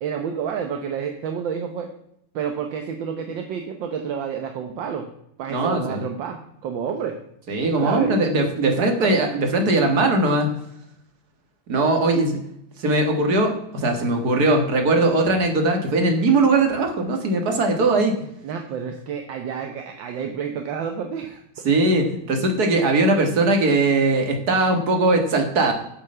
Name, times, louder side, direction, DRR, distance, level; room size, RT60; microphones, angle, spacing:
voice 1, 0.0-1.9 2.3-5.1 5.4-7.2 7.8-8.1 8.6-9.1 18.4-21.4, right 7 dB, 70° right, 5 dB, 1.7 m, -29 dB
voice 2, 5.5-6.0 7.5-10.5 11.7-12.4 12.8-18.1 21.6-25.7, right 2 dB, 50° right, 3 dB, 2.4 m, -20 dB
8.9 x 8.4 x 5.7 m, 0.76 s
omnidirectional pair, 2.1 m